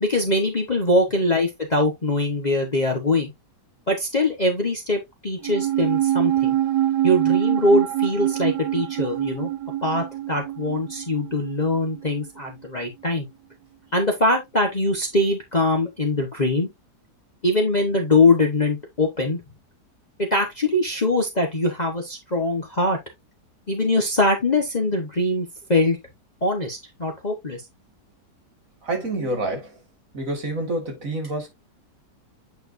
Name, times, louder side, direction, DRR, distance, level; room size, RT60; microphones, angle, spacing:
voice 1, 0.0-3.3 3.9-6.5 7.0-9.5 9.8-13.3 13.9-16.7 17.4-19.4 20.2-23.0 23.7-26.0 26.4-27.6, left 2 dB, 30° left, 1.2 m, -22 dB
sound 1, 5.4-12.0 12.3-12.4, right 12 dB, 90° right, 1.3 m, -24 dB
voice 2, 28.8-29.8 30.1-31.5, right 2 dB, 50° right, 2.6 m, -27 dB
8.9 x 4.8 x 2.6 m
omnidirectional pair, 1.8 m